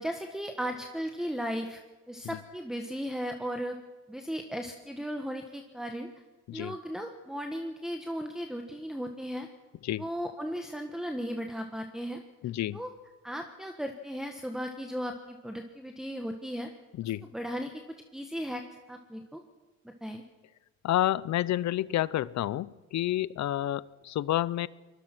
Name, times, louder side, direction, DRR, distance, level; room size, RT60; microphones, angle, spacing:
voice 1, 0.0-1.8 2.1-3.8 4.1-6.1 6.5-9.5 10.0-12.2 12.7-12.9 13.2-16.7 17.3-17.7 18.1-18.6 18.9-19.4 20.0-20.2, equal, ahead, 5 dB, 1.5 m, -36 dB
voice 2, 12.4-12.8 17.0-17.3 20.8-24.7, left 13 dB, 65° left, 20 dB, 0.6 m, -29 dB
24.0 x 21.0 x 6.1 m, 1.2 s
cardioid pair, 90°, 30 cm